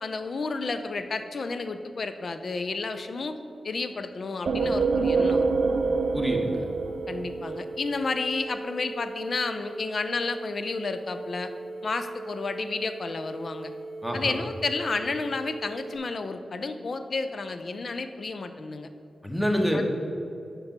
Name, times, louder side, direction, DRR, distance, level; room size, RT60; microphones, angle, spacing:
voice 1, 0.0-3.4 3.6-5.5 7.1-11.5 11.8-13.7 14.1-18.9 19.7-19.8, left 3 dB, 60° left, 9 dB, 0.5 m, -31 dB
sound 1, 4.5-16.0, right 2 dB, 20° right, 1.2 m, -39 dB
sound 2, 4.5-8.1, right 4 dB, 70° right, 0.4 m, -26 dB
voice 2, 6.1-6.7 14.0-14.3 19.2-19.8, equal, 5° left, 1 dB, 1.2 m, -27 dB
5.3 x 5.3 x 5.9 m, 2.7 s
cardioid pair, 45°, 0 cm